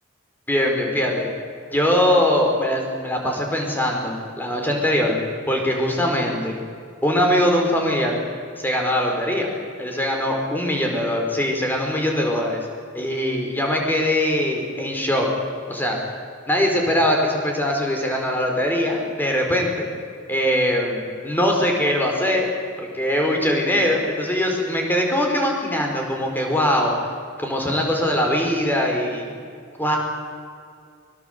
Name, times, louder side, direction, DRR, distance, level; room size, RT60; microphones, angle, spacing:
voice 1, 0.5-1.3 1.7-5.2 5.5-6.6 7.0-8.2 8.6-9.5 9.8-12.6 12.9-15.3 15.7-16.0 16.5-19.9 20.3-22.5 22.8-26.9 27.4-29.4 29.8-30.0, left 1 dB, 10° left, 1 dB, 4.8 m, -22 dB
23.5 x 23.0 x 8.2 m, 2.2 s
head